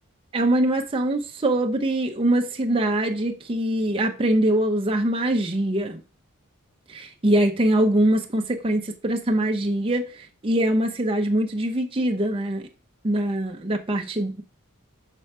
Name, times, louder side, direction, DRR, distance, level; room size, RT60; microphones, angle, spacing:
voice 1, 0.3-6.0 6.9-12.7 13.0-14.4, right 1 dB, 25° right, 0.7 m, -23 dB
6.2 x 4.4 x 5.4 m
head